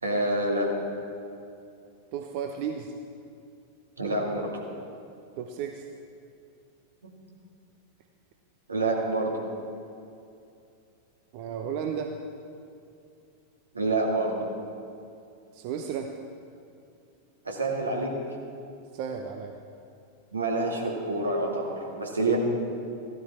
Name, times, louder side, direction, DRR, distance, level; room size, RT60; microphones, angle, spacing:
voice 1, 0.0-0.7 4.0-4.5 8.7-9.3 13.7-14.4 17.5-18.1 20.3-22.4, right 2 dB, 80° right, -1 dB, 2.2 m, -27 dB
voice 2, 2.1-2.9 5.4-5.9 11.3-12.2 15.5-16.1 18.9-19.6, right 7 dB, 45° right, 4 dB, 0.8 m, -33 dB
15.5 x 12.5 x 4.3 m, 2.6 s
figure-of-eight pair, 90°, 0 cm